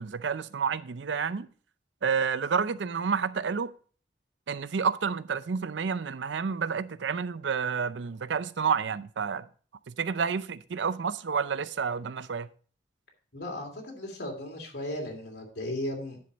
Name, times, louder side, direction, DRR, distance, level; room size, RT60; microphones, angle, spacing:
voice 1, 0.0-1.5 2.0-3.7 4.5-9.5 9.9-12.5, right 6 dB, 85° right, 0.5 m, -29 dB
voice 2, 13.3-16.2, left 1 dB, 65° left, 2.9 m, -36 dB
10.5 x 7.0 x 4.0 m
head